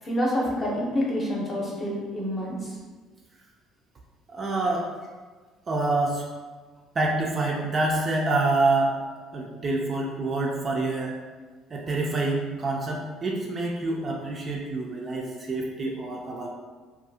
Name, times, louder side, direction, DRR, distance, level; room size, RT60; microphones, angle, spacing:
voice 1, 0.0-2.8, equal, 25° left, -4 dB, 0.7 m, -27 dB
voice 2, 4.3-4.9 5.7-6.2 7.0-9.0 9.3-11.1 11.7-16.5, right 2 dB, 30° right, -1 dB, 0.3 m, -26 dB
2.5 x 2.3 x 2.7 m, 1.4 s
cardioid pair, 135°, 0 cm